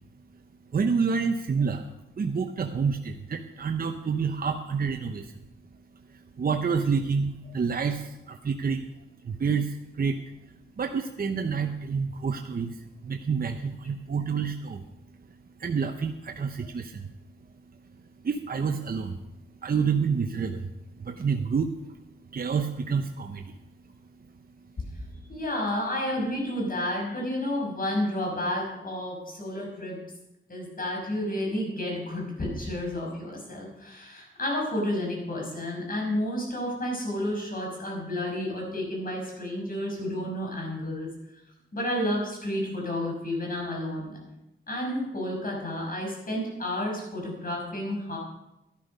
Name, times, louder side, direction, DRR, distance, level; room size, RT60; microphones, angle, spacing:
voice 1, 0.7-1.8 2.2-5.3 6.1-8.9 9.2-10.2 10.8-14.8 15.6-17.1 18.2-19.2 19.6-20.7 21.0-22.0 22.3-23.5, right 5 dB, 45° right, 5 dB, 0.8 m, -28 dB
voice 2, 25.3-30.0 30.5-41.1 41.7-44.1 44.7-48.2, left 1 dB, 45° left, -1 dB, 5.8 m, -31 dB
12.0 x 11.5 x 5.4 m, 0.91 s
wide cardioid pair, 85°, 21 cm